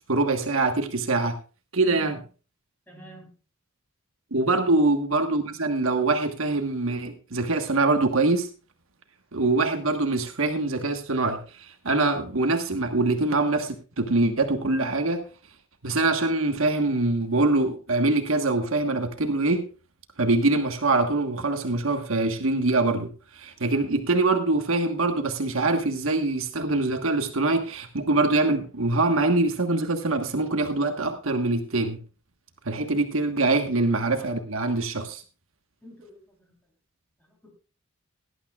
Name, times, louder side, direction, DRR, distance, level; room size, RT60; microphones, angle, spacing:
voice 1, 0.1-1.4 1.7-2.2 4.3-8.5 9.3-15.3 15.8-19.7 20.2-32.0 32.6-35.2, right 2 dB, 75° right, 6 dB, 1.4 m, -24 dB
voice 2, 1.8-2.2 2.9-3.4 4.5-4.8 32.8-32.9 35.8-36.6 37.2-37.5, right 1 dB, 10° left, 1 dB, 3.6 m, -48 dB
17.5 x 11.5 x 2.4 m, 0.34 s
head